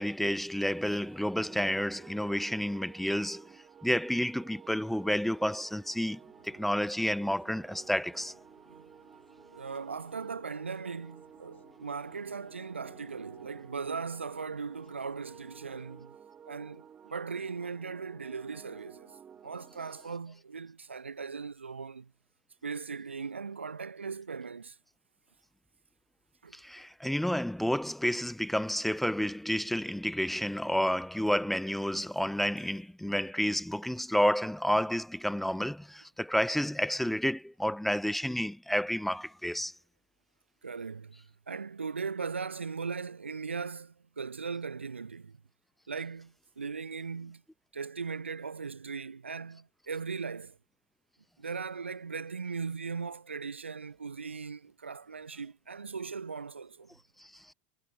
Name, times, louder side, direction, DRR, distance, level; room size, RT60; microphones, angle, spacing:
voice 1, 0.0-3.5 3.8-8.3 26.5-39.7 57.2-57.3, equal, 5° left, 0.3 m, -30 dB
sound 1, 0.5-20.2, right 8 dB, 25° right, 1.3 m, -54 dB
sound 2, 6.2-16.1, left 9 dB, 75° left, 3.5 m, -65 dB
voice 2, 9.5-16.2 16.5-19.2 19.4-22.1 22.6-24.8 26.4-26.6 40.6-45.4 45.9-47.4 47.7-50.6 51.4-56.9, right 5 dB, 85° right, 0.5 m, -39 dB
figure-of-eight pair, 85°, 6 cm